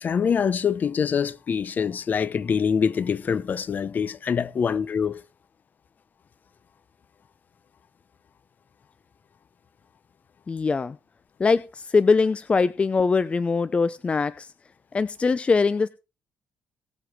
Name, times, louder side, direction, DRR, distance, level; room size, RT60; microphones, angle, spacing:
voice 1, 0.0-5.2, left 6 dB, 45° left, 1.1 m, -25 dB
voice 2, 10.5-11.0 11.4-14.5 14.9-15.9, left 4 dB, 30° left, 0.6 m, -22 dB
18.5 x 7.8 x 4.8 m
cardioid pair, 105°, 4 cm